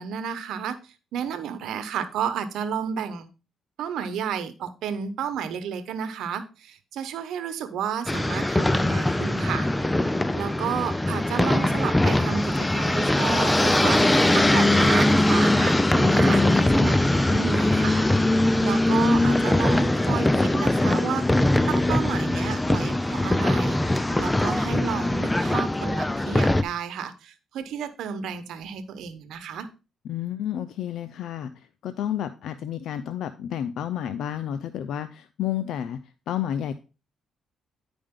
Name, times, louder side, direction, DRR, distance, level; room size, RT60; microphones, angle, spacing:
voice 1, 0.0-3.3 3.8-9.7 10.3-15.5 15.9-18.0 18.6-21.3 21.7-29.7, right 7 dB, 80° right, 10 dB, 1.0 m, -32 dB
sound 1, 8.1-26.6, left 1 dB, 10° left, 0.5 m, -21 dB
Laughter, 13.4-15.2 15.5-15.8 16.1-16.5 16.8-17.2 17.5-17.7 18.0-18.1 18.3-18.4 18.7-18.8 19.1-19.4, right 6 dB, 45° right, 0.7 m, -35 dB
voice 2, 30.0-31.5 31.8-36.0 36.3-36.7, left 10 dB, 75° left, 12 dB, 0.5 m, -30 dB
9.6 x 5.2 x 3.7 m, 0.31 s
cardioid pair, 90°, 0 cm